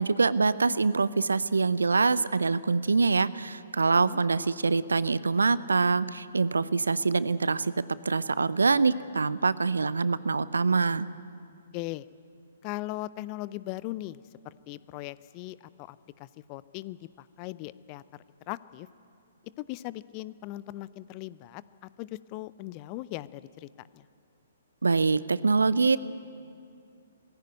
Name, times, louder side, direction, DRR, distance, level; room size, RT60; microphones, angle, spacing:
voice 1, 0.0-7.7 8.0-11.1 24.8-26.0, right 4 dB, 75° right, 18 dB, 0.6 m, -25 dB
voice 2, 11.7-12.0 12.6-18.0 18.5-18.9 19.6-24.0, left 17 dB, 30° left, 18 dB, 0.5 m, -39 dB
19.0 x 15.5 x 9.4 m, 2.4 s
figure-of-eight pair, 125°, 0 cm